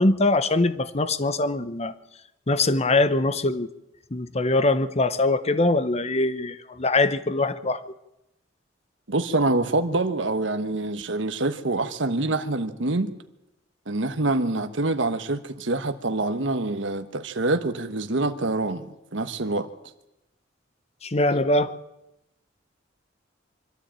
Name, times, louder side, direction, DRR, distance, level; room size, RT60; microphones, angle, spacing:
voice 1, 0.0-1.9 2.5-3.7 4.1-7.8 21.0-21.7, left 2 dB, 35° left, 0.9 m, -22 dB
voice 2, 9.1-13.1 13.9-19.7, right 2 dB, 75° right, 1.2 m, -26 dB
24.5 x 13.0 x 8.9 m
head